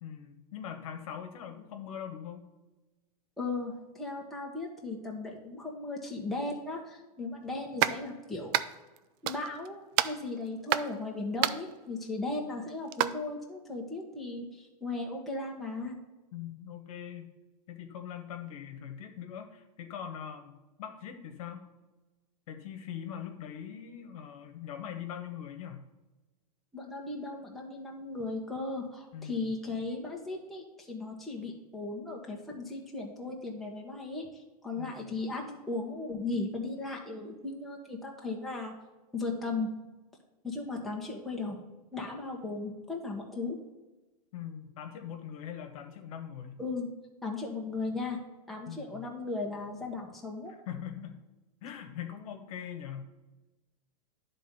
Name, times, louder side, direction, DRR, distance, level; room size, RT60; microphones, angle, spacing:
voice 1, 0.0-2.5 16.3-17.3 17.7-20.5 20.8-21.6 22.5-25.8 29.1-29.4 34.8-35.1 44.3-46.6 48.7-49.0 50.7-51.2 51.6-53.0, left 9 dB, 60° left, 6 dB, 1.2 m, -42 dB
voice 2, 3.4-8.6 9.2-16.0 26.7-38.7 39.1-39.7 40.4-41.6 41.9-43.6 46.6-46.9 47.2-48.2 48.5-50.5, left 3 dB, ahead, -3 dB, 1.2 m, -36 dB
sound 1, 7.8-8.0 8.5-9.0 9.3-9.7 10.0-10.9 11.4-11.7 12.9-13.1, right 13 dB, 35° right, 0.4 m, -29 dB
10.5 x 3.8 x 5.5 m, 1.1 s
supercardioid pair, 140°, 20 cm